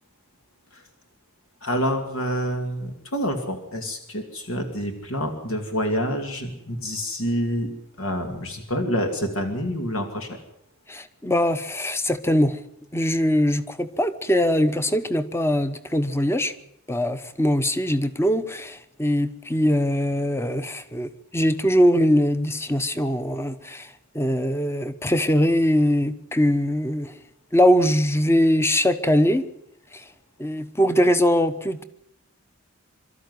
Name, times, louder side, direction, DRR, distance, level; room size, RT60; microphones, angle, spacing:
voice 1, 1.6-7.7 8.0-10.4, equal, 75° left, 2.6 m, -27 dB
voice 2, 10.9-12.6 12.9-16.5 16.9-27.1 27.5-29.5 29.9-30.0 30.4-31.8, equal, 10° left, 1.0 m, -22 dB
24.5 x 13.0 x 9.5 m
head